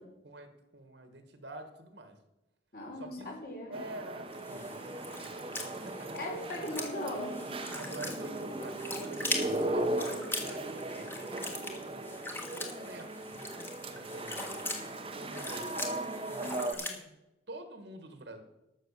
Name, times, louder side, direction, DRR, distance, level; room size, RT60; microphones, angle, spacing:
voice 1, 0.2-2.2 2.9-3.3 3.7-5.5 6.0-6.6 7.7-9.2 9.6-11.0 11.3-11.7 12.5-13.3 13.8-14.6 15.1-15.7 16.3-17.1 17.5-18.4, right 1 dB, 65° right, 7 dB, 1.6 m, -47 dB
voice 2, 2.7-3.8 6.1-7.3, left 1 dB, 50° left, -1 dB, 3.9 m, -38 dB
sound 1, 3.7-16.7, right 2 dB, 30° right, 0.9 m, -37 dB
sound 2, 4.3-17.0, left 2 dB, 10° left, 1.4 m, -41 dB
13.0 x 6.4 x 6.7 m, 0.95 s
head